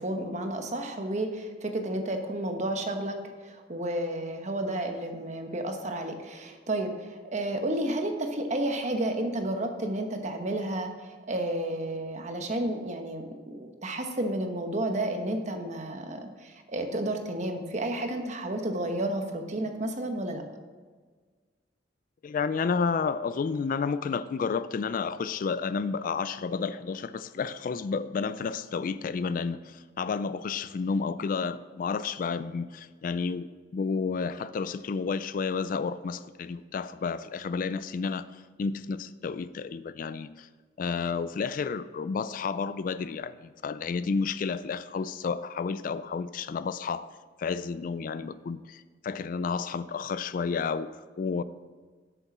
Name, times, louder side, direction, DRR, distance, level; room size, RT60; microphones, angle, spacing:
voice 1, 0.0-20.4, right 1 dB, 40° right, 5 dB, 1.0 m, -31 dB
voice 2, 22.2-40.5 40.8-47.1 47.4-51.4, left 5 dB, 50° left, 15 dB, 0.3 m, -31 dB
8.1 x 7.0 x 6.0 m, 1.5 s
head